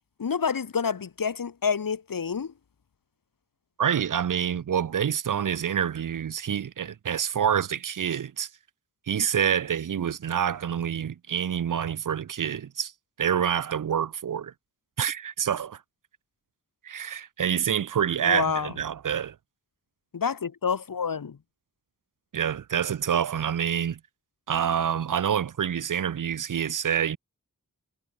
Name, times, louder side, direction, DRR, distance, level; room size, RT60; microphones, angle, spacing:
voice 1, 0.2-2.5 18.2-18.7 20.1-21.4, left 6 dB, 75° left, 0.9 m, -28 dB
voice 2, 3.8-8.5 9.1-12.9 13.2-14.5 15.0-15.8 16.8-19.4 22.3-24.0 24.5-27.2, right 8 dB, 65° right, 0.5 m, -27 dB
wide cardioid pair, 55°, 34 cm